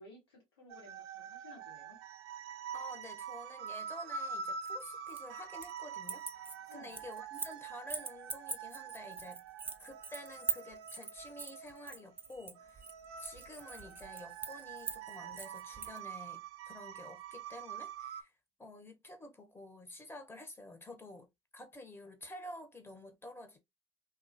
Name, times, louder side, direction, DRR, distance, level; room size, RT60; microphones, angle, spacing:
voice 1, 0.0-2.0 6.7-7.0, left 2 dB, 90° left, 1.3 m, -56 dB
sound 1, 0.7-18.2, right 6 dB, 80° right, 0.4 m, -45 dB
voice 2, 2.7-9.4 9.8-12.8 13.2-18.3 18.6-23.6, left 1 dB, 15° left, 1.0 m, -50 dB
sound 2, 4.6-5.8 6.0-7.6 7.9-16.0, right 4 dB, 15° right, 0.5 m, -42 dB
2.6 x 2.4 x 2.5 m
hypercardioid pair, 60°, 13 cm